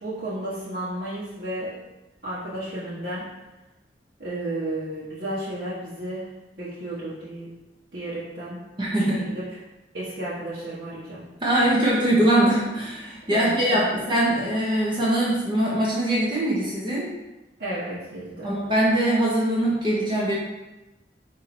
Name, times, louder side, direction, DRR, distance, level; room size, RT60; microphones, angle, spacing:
voice 1, 0.0-1.8 2.2-3.3 4.2-6.3 6.6-7.5 7.9-8.7 9.0-9.4 9.9-11.5 13.3-14.0 17.6-18.5, right 1 dB, 65° right, -12 dB, 1.3 m, -33 dB
voice 2, 8.8-9.2 11.4-17.1 18.4-20.3, right 1 dB, 25° right, -6 dB, 1.0 m, -22 dB
4.4 x 2.9 x 4.2 m, 1.0 s
head